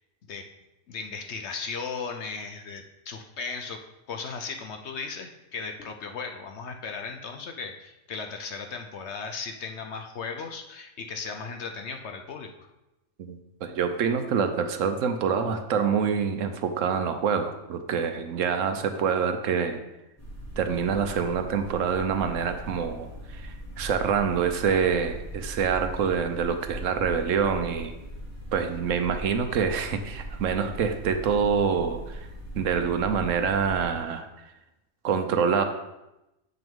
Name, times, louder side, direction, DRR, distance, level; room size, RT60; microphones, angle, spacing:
voice 1, 0.9-3.8 4.1-12.7, left 5 dB, 60° left, 5 dB, 0.8 m, -36 dB
voice 2, 13.2-19.8 20.6-27.9 28.5-32.3 32.5-34.3 35.0-35.6, right 6 dB, 70° right, 7 dB, 1.0 m, -26 dB
sound 1, 20.2-33.8, right 1 dB, 10° left, 1.4 m, -40 dB
7.8 x 6.0 x 3.6 m, 0.94 s
omnidirectional pair, 1.5 m